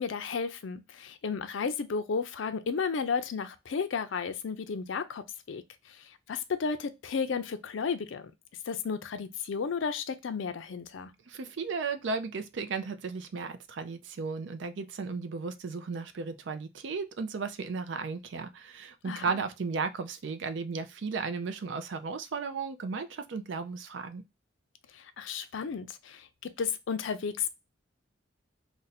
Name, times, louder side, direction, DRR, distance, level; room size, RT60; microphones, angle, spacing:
voice 1, 0.0-5.6 5.9-6.0 6.3-8.3 8.7-11.1 19.0-19.4 24.9-27.5, left 5 dB, 70° left, 0.4 m, -33 dB
voice 2, 11.3-24.2, right 4 dB, 65° right, 0.4 m, -35 dB
2.5 x 2.2 x 4.0 m
head